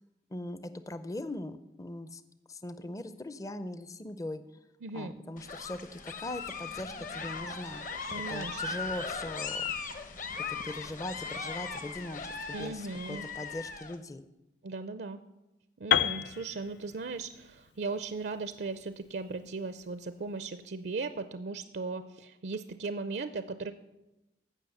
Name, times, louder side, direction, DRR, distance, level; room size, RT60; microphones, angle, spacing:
voice 1, 0.3-2.2 2.5-4.4 4.9-7.8 8.3-9.7 10.4-14.3, left 1 dB, 20° left, 12 dB, 0.5 m, -40 dB
voice 2, 4.8-5.1 8.1-8.8 12.5-13.3 14.6-15.2 15.8-23.7, right 3 dB, 65° right, 11 dB, 0.5 m, -37 dB
sound 1, 5.4-13.9, left 5 dB, 45° left, 0.9 m, -38 dB
Piano, 15.9-19.8, left 9 dB, 70° left, 0.5 m, -32 dB
15.5 x 5.9 x 7.0 m, 0.99 s
head